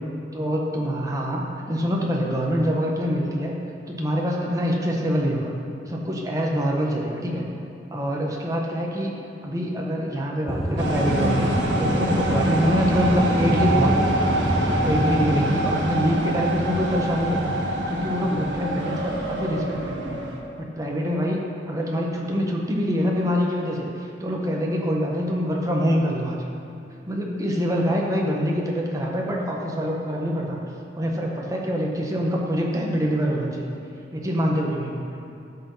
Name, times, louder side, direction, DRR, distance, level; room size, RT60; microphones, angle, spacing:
voice 1, 0.3-3.5 3.9-5.5 5.9-7.5 7.9-9.1 9.4-17.6 17.9-20.2 20.6-26.4 27.1-30.6 31.0-33.7 34.1-35.0, equal, 20° right, -1 dB, 1.2 m, -25 dB
Aircraft / Engine, 10.5-15.5, equal, ahead, 0.5 m, -28 dB
sound 1, 10.8-20.4, right 1 dB, 80° right, 1.4 m, -25 dB
12.5 x 6.3 x 5.6 m, 2.6 s
head